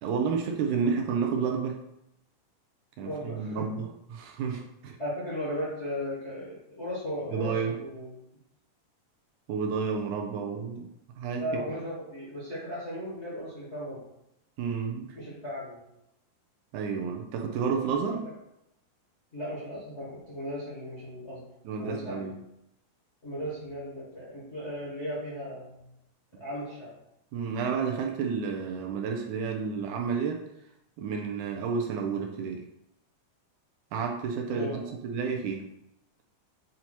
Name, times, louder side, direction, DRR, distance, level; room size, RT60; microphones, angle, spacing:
voice 1, 0.0-1.8 3.0-5.0 7.3-7.7 9.5-10.9 11.2-11.5 14.6-15.2 16.7-18.3 21.7-22.4 27.3-30.4 31.0-32.6 33.9-35.7, right 6 dB, 80° right, 2 dB, 1.9 m, -30 dB
voice 2, 3.0-3.7 5.0-8.2 11.4-14.0 15.1-15.8 18.1-18.2 19.3-21.4 21.8-22.3 23.2-25.9 26.4-26.9 34.5-34.8, equal, 30° left, -7 dB, 1.2 m, -36 dB
7.7 x 2.8 x 4.4 m, 0.83 s
omnidirectional pair, 3.8 m